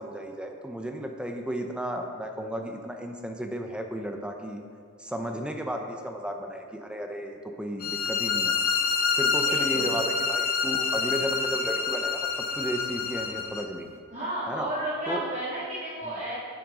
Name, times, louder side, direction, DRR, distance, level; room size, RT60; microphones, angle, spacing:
voice 1, 0.0-4.6 5.0-8.5 9.1-13.9 14.5-14.7 15.1-15.2 16.0-16.1, equal, 5° right, 3 dB, 0.6 m, -34 dB
sound 1, 7.8-13.6, left 5 dB, 45° left, 0.7 m, -27 dB
voice 2, 9.4-9.9 14.1-16.3, right 1 dB, 35° right, -12 dB, 2.6 m, -32 dB
9.2 x 7.6 x 4.9 m, 2.1 s
head